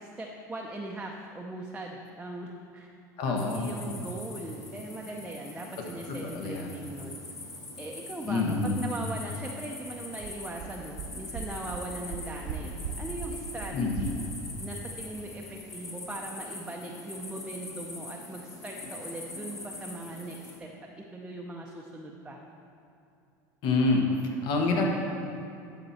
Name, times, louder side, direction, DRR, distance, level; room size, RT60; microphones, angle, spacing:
voice 1, 0.0-2.9 3.2-7.2 7.8-14.1 14.6-20.7 21.0-22.4, right 2 dB, 10° right, -1 dB, 0.7 m, -40 dB
voice 2, 3.2-3.8 6.3-6.7 8.3-8.8 13.7-14.2 23.6-24.0 24.4-24.8, left 3 dB, 55° left, 1 dB, 1.4 m, -27 dB
sound 1, 3.4-20.6, left 2 dB, 35° left, 1.9 m, -43 dB
sound 2, 9.9-10.0 10.2-10.3 10.6-10.7 11.0-11.1 11.3-11.4 11.7-11.8 12.1-12.5 12.8-12.9 13.2-13.3 13.6-13.7 14.0-14.1, right 10 dB, 70° right, 0.9 m, -36 dB
11.0 x 6.0 x 4.3 m, 2.6 s
supercardioid pair, 110°, 9 cm